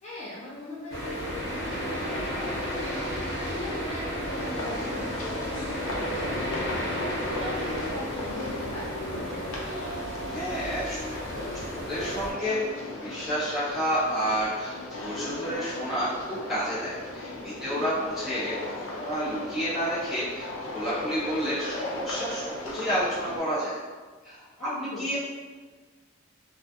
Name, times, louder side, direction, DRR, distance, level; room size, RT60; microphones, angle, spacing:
voice 1, 0.0-6.4 6.9-9.9 17.6-17.8 24.6-25.1, left 1 dB, 35° left, -9 dB, 0.5 m, -40 dB
sound 1, 0.9-12.3, equal, 65° left, 0.9 m, -33 dB
sound 2, 4.2-23.4, left 2 dB, 90° left, 0.5 m, -37 dB
voice 2, 10.3-12.6 13.0-23.8 24.2-25.2, equal, ahead, -14 dB, 1.2 m, -30 dB
2.5 x 2.4 x 2.4 m, 1.4 s
head